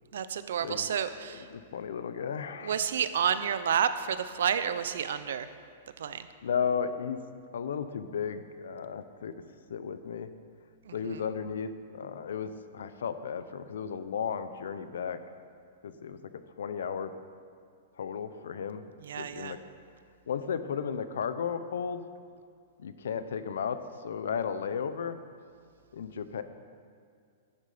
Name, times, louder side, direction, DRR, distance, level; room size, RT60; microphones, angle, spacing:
voice 1, 0.1-1.5 2.6-5.5 6.0-6.3 10.9-11.2 19.0-19.6, right 8 dB, 70° right, 12 dB, 0.7 m, -30 dB
voice 2, 1.5-2.8 6.4-7.2 7.5-9.3 9.7-10.3 10.9-15.2 15.8-16.2 16.6-17.1 18.0-18.8 19.2-19.6 20.3-22.0 22.8-23.8 24.0-25.2 25.9-26.4, left 7 dB, 90° left, 11 dB, 0.8 m, -34 dB
11.5 x 10.5 x 5.1 m, 2.2 s
supercardioid pair, 175°, 0 cm